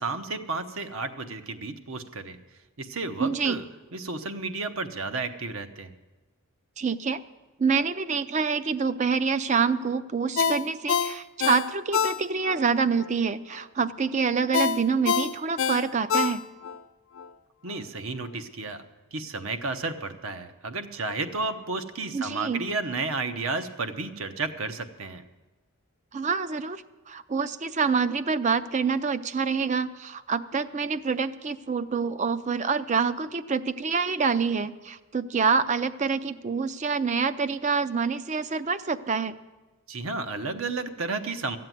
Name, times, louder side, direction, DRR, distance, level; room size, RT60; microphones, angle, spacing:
voice 1, 0.0-2.4 2.8-3.6 3.9-5.9 17.6-18.8 19.1-25.2 39.9-41.6, right 3 dB, 65° right, 9 dB, 0.9 m, -32 dB
voice 2, 3.2-3.6 6.8-7.2 7.6-16.4 22.1-22.6 26.1-39.3, right 5 dB, 30° right, 14 dB, 0.4 m, -26 dB
Ringtone, 10.4-12.6 13.0-13.1 14.5-16.8 17.2-17.3, left 6 dB, 60° left, 0.4 m, -26 dB
13.5 x 7.7 x 9.2 m, 1.1 s
head